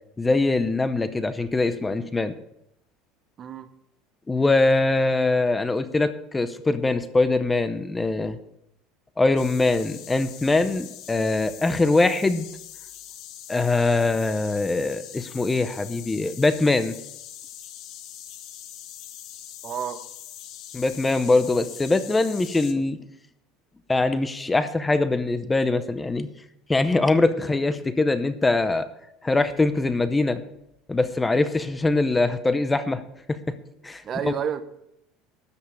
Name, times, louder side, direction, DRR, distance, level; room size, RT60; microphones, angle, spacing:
voice 1, 0.2-2.3 4.3-8.4 9.2-12.5 13.5-17.0 20.7-23.0 23.9-26.3 26.7-28.9 29.2-30.4 30.9-33.0 33.3-33.4 33.8-34.3, left 2 dB, 10° left, 12 dB, 0.6 m, -22 dB
voice 2, 3.4-3.7 19.6-20.0 34.0-34.6, right 8 dB, 30° right, 11 dB, 0.8 m, -30 dB
sound 1, 9.4-22.7, left 11 dB, 45° left, 1.0 m, -42 dB
13.0 x 5.3 x 8.1 m, 0.81 s
cardioid pair, 165°, 0 cm